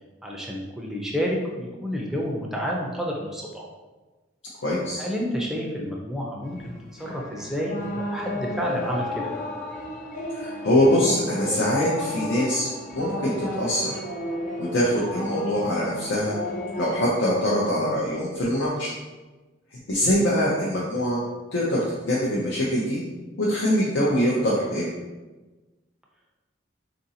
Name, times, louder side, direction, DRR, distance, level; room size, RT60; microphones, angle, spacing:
voice 1, 0.2-3.7 5.0-6.7 7.0-9.3, equal, ahead, -2 dB, 0.4 m, -30 dB
voice 2, 4.6-5.0 10.3-13.9 14.6-16.4 16.8-18.9 19.7-21.2 21.5-23.0 23.4-24.9, equal, 80° left, -6 dB, 0.6 m, -23 dB
sound 1, 6.5-17.0, left 1 dB, 40° left, 0.7 m, -33 dB
3.9 x 2.5 x 2.7 m, 1.2 s
head